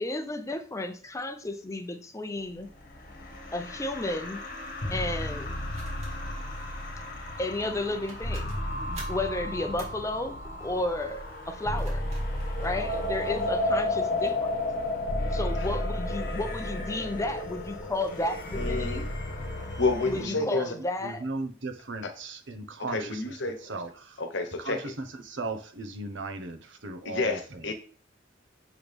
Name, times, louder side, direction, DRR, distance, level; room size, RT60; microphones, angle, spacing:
voice 1, 0.0-2.7 3.5-4.5 4.9-5.6 7.4-12.1 12.6-14.6 15.3-19.0 20.0-21.3, left 2 dB, 15° left, 0.7 m, -33 dB
sound 1, 2.6-20.2, left 1 dB, 45° left, 1.8 m, -32 dB
sound 2, 3.3-3.5 5.7-6.7 7.7-7.8 8.1-9.3 9.8-10.0 11.5-13.4 14.0-14.4, right 2 dB, 35° right, 2.6 m, -49 dB
voice 2, 18.5-19.0 19.8-20.8 22.0-22.1 22.9-23.7 24.2-24.9 27.0-27.7, left 3 dB, 65° left, 1.2 m, -30 dB
voice 3, 20.2-20.7 21.0-24.2 24.6-27.7, right 2 dB, 65° right, 1.1 m, -37 dB
7.1 x 6.2 x 3.5 m
head